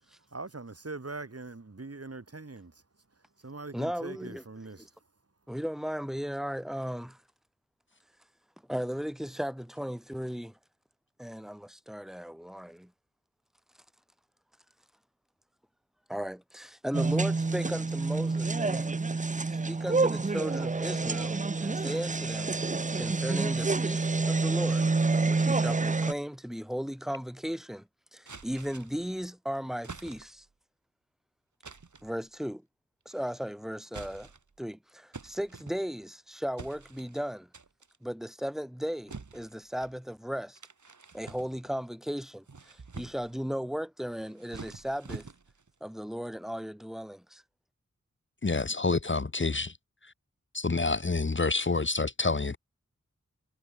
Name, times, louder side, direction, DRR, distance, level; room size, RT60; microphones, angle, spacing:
voice 1, 0.0-2.8 3.1-5.0, right 3 dB, 55° right, 7.6 m, -42 dB
voice 2, 3.7-4.4 5.5-7.2 8.7-10.6 11.2-12.9 16.1-18.9 19.5-22.6 22.9-24.9 25.3-30.5 32.0-32.6 33.1-34.3 34.6-37.5 38.0-40.6 41.1-45.3 45.8-47.4, equal, ahead, 3.9 m, -36 dB
sound 1, 16.9-26.1, right 3 dB, 25° right, 0.7 m, -28 dB
sound 2, 28.3-29.1 29.8-30.5 31.6-32.1 33.1-33.5 33.9-34.6 35.1-36.1 36.6-37.2 37.5-38.0 39.1-40.0 40.6-41.8 42.3-43.4 44.1-45.7, right 4 dB, 85° right, 7.3 m, -47 dB
voice 3, 48.4-49.7 50.0-50.1 50.5-52.6, left 3 dB, 40° left, 1.2 m, -28 dB
wide cardioid pair, 50°, 29 cm